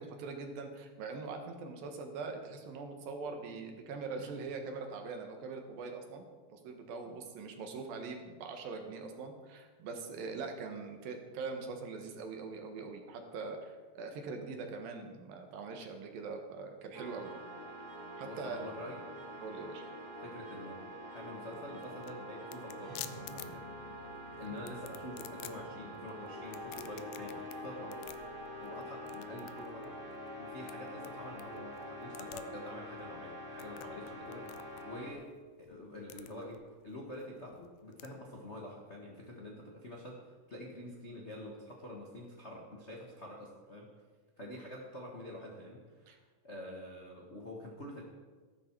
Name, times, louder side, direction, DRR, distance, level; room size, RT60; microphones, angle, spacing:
voice 1, 0.0-6.3 6.5-17.3 18.2-18.6 19.4-19.8 46.1-46.2, right 4 dB, 80° right, 4 dB, 3.2 m, -42 dB
sound 1, 16.9-35.1, equal, 25° right, 2.5 m, -46 dB
voice 2, 18.2-19.0 20.2-20.9 21.1-23.9 24.4-28.0 28.6-30.0 30.4-35.3 35.6-43.9 44.4-48.0, left 1 dB, 60° left, -2 dB, 0.7 m, -47 dB
sound 2, 21.4-38.1, left 14 dB, 85° left, 2.3 m, -52 dB
14.0 x 12.5 x 4.6 m, 1.4 s
omnidirectional pair, 4.1 m